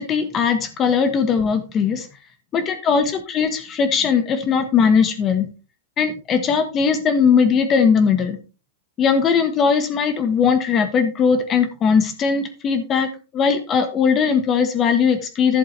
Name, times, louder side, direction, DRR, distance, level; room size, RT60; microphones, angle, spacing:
voice 1, 0.0-2.1 2.5-5.5 6.0-8.4 9.0-15.6, left 6 dB, 25° left, 10 dB, 1.3 m, -19 dB
11.5 x 7.4 x 3.3 m, 0.32 s
hypercardioid pair, 140°, 0 cm